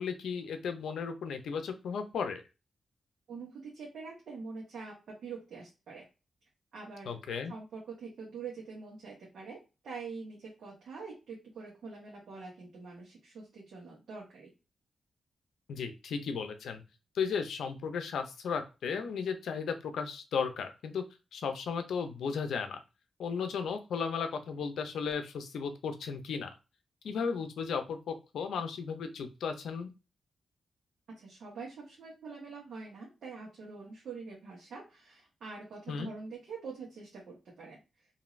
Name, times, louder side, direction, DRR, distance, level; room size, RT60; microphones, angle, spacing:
voice 1, 0.0-2.4 7.1-7.5 15.7-16.8 17.1-21.0 21.3-22.8 23.2-26.5 27.0-29.9 35.9-36.1, left 6 dB, 90° left, 8 dB, 0.5 m, -35 dB
voice 2, 3.3-6.0 6.7-7.2 7.5-9.6 9.8-14.5 31.1-37.8, right 4 dB, 70° right, -4 dB, 1.0 m, -45 dB
3.1 x 2.6 x 2.4 m, 0.29 s
wide cardioid pair, 160°, 0 cm